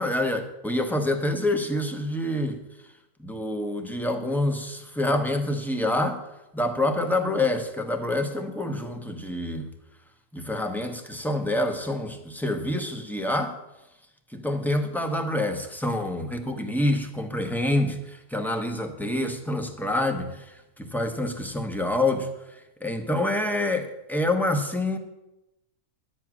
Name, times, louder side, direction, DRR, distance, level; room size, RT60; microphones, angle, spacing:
voice 1, 0.0-2.6 3.2-6.2 6.5-9.7 10.3-13.6 14.3-25.0, left 1 dB, ahead, 5 dB, 0.8 m, -27 dB
11.0 x 9.3 x 6.1 m, 0.92 s
omnidirectional pair, 1.7 m